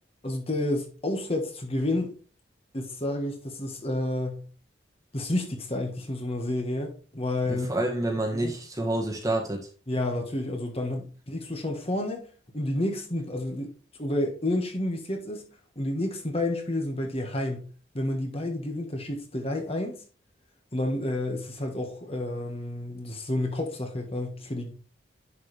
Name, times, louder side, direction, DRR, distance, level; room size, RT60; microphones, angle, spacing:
voice 1, 0.2-2.1 2.7-4.4 5.1-7.7 8.3-8.5 9.9-12.3 12.5-13.7 14.0-15.5 15.7-17.7 17.9-20.0 20.7-24.7, left 1 dB, 30° left, 1.5 m, -30 dB
voice 2, 7.5-9.7, right 1 dB, 20° right, 1.5 m, -28 dB
10.5 x 4.9 x 3.4 m
head